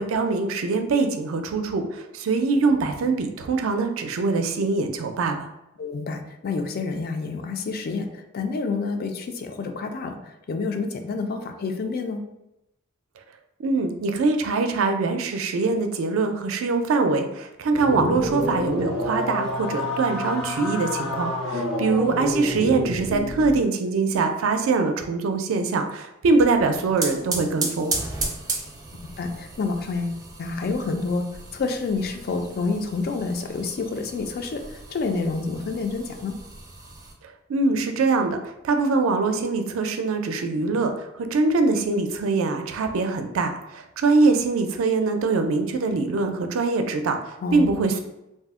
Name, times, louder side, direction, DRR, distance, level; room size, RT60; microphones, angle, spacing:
voice 1, 0.0-5.5 13.6-28.0 37.5-40.9 41.3-48.0, right 3 dB, 85° right, 6 dB, 0.4 m, -23 dB
voice 2, 5.8-12.2 18.0-18.2 21.5-21.7 29.2-36.4 47.4-47.7, left 4 dB, 50° left, 5 dB, 0.3 m, -28 dB
sound 1, 17.7-23.6, left 1 dB, 90° left, 1.0 m, -29 dB
sound 2, 26.5-37.1, right 3 dB, 20° right, 0.4 m, -35 dB
2.6 x 2.0 x 3.5 m, 0.90 s
head